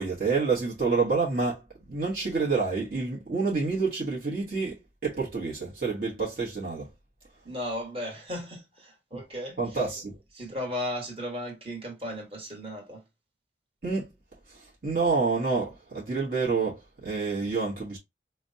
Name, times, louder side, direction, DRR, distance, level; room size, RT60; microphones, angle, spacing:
voice 1, 0.0-1.6 1.9-6.9 9.6-10.2 13.8-14.1 14.5-18.0, right 4 dB, 50° right, 1.1 m, -28 dB
voice 2, 7.4-9.8 10.3-13.0, left 1 dB, 30° right, 1.4 m, -35 dB
4.9 x 2.1 x 2.7 m
head